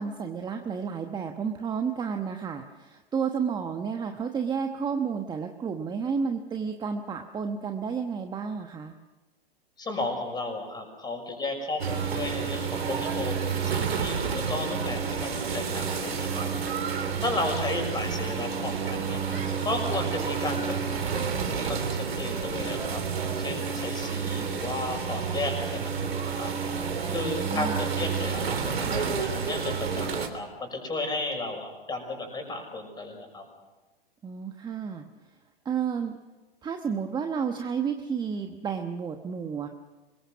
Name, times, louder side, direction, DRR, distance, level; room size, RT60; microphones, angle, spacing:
voice 1, 0.0-8.9 17.1-17.3 27.1-27.9 34.2-35.1 35.6-36.2 36.6-39.7, right 6 dB, 15° right, 5 dB, 1.2 m, -31 dB
voice 2, 9.8-16.5 17.2-19.2 19.6-26.5 27.1-33.4, left 2 dB, 15° left, 4 dB, 6.4 m, -34 dB
sound 1, 11.8-30.3, right 6 dB, 85° right, 3.3 m, -30 dB
26.0 x 22.0 x 6.2 m, 1.2 s
hypercardioid pair, 120°, 30 cm